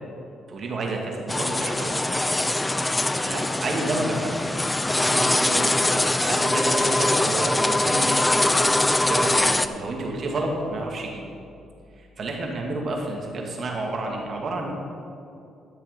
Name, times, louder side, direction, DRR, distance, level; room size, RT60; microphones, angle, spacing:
voice 1, 0.5-2.0 3.1-8.8 9.1-11.2 12.0-14.7, right 2 dB, 50° right, 0 dB, 2.2 m, -30 dB
sound 1, 1.3-9.7, left 2 dB, 15° left, 0.5 m, -22 dB
12.0 x 7.2 x 5.4 m, 2.6 s
cardioid pair, 90°, 0 cm